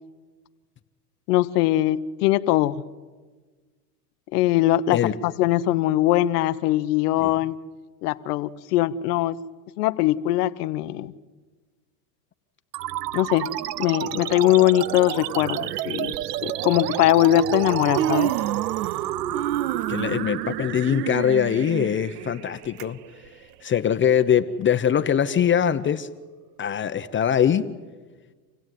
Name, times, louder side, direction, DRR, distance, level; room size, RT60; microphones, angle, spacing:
voice 1, 1.3-2.8 4.3-7.6 8.0-9.4 9.8-11.1 13.1-13.5 13.8-16.1 16.4-18.4, left 14 dB, 75° left, 12 dB, 1.1 m, -21 dB
sound 1, 12.7-23.7, right 13 dB, 90° right, 0.8 m, -31 dB
Human voice, 14.1-14.3 15.4-15.5 16.1-16.3 17.3-17.4 17.7-19.1 19.3-22.8 23.3-23.4 24.2-24.3, right 13 dB, 65° right, 0.8 m, -29 dB
voice 2, 19.9-23.0 23.6-26.1 26.6-27.6, left 9 dB, 25° left, 9 dB, 0.9 m, -22 dB
28.0 x 16.5 x 9.3 m, 1.4 s
supercardioid pair, 115°, 47 cm